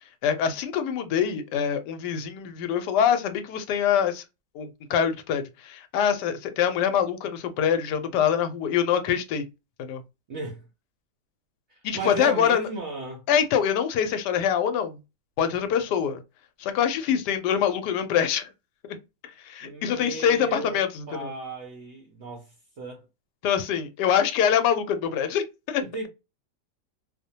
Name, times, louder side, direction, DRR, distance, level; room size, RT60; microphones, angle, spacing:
voice 1, 0.2-4.2 4.5-9.4 9.8-10.0 11.8-12.6 13.3-15.0 15.4-16.2 16.6-18.5 18.9-19.0 19.2-21.3 23.4-25.8, left 8 dB, 80° left, 1.2 m, -24 dB
voice 2, 10.3-10.7 11.7-13.2 19.6-23.1 25.8-26.1, right 3 dB, 70° right, 0.7 m, -35 dB
2.7 x 2.1 x 2.7 m
omnidirectional pair, 1.8 m